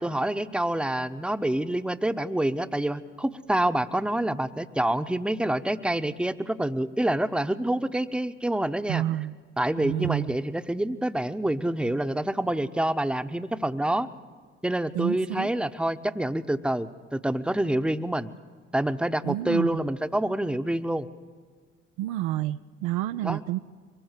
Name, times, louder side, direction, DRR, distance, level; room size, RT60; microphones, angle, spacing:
voice 1, 0.0-9.0 9.6-14.1 14.6-18.3 18.7-21.1 23.2-23.4, right 1 dB, 5° right, 10 dB, 1.0 m, -27 dB
voice 2, 8.9-9.3 9.8-10.3 14.9-15.5 19.2-19.8 22.0-23.6, right 15 dB, 65° right, 10 dB, 0.7 m, -29 dB
23.5 x 19.0 x 8.3 m, 1.5 s
figure-of-eight pair, 50°, 36 cm